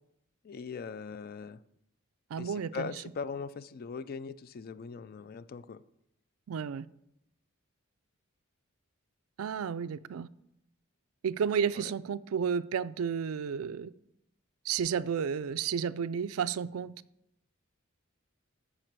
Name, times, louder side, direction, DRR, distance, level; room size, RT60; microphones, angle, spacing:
voice 1, 0.4-1.6 2.4-5.8 11.7-11.9, left 5 dB, 45° left, 16 dB, 0.4 m, -40 dB
voice 2, 2.3-2.9 6.5-6.9 9.4-10.3 11.2-13.9 14.7-16.9, right 7 dB, 80° right, 15 dB, 0.4 m, -32 dB
14.0 x 4.9 x 4.6 m, 0.81 s
head